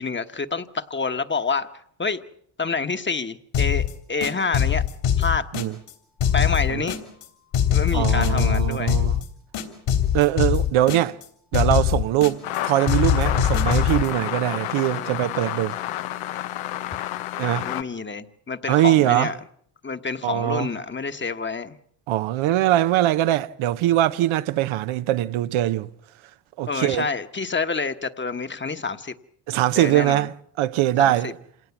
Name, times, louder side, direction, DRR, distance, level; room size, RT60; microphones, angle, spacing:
voice 1, 0.0-1.7 2.0-2.2 2.6-4.8 5.2-5.5 6.3-7.0 7.7-9.0 14.9-15.1 17.6-19.4 19.8-21.8 26.7-29.1 29.7-30.3 31.0-31.3, left 4 dB, 20° left, 1.2 m, -28 dB
sound 1, 3.5-3.9 4.2-5.9 6.2-7.2 7.5-9.2 9.5-11.2 11.5-12.6 12.9-14.1, left 9 dB, 70° left, 3.5 m, -22 dB
voice 2, 7.9-9.2 10.1-11.2 11.5-15.8 17.4-17.7 18.7-19.3 20.2-20.7 22.1-25.9 26.6-27.1 29.5-31.3, right 14 dB, 70° right, 0.9 m, -22 dB
sound 2, 12.4-17.8, left 14 dB, 90° left, 1.0 m, -30 dB
26.5 x 18.0 x 7.2 m
supercardioid pair, 80°, 50 cm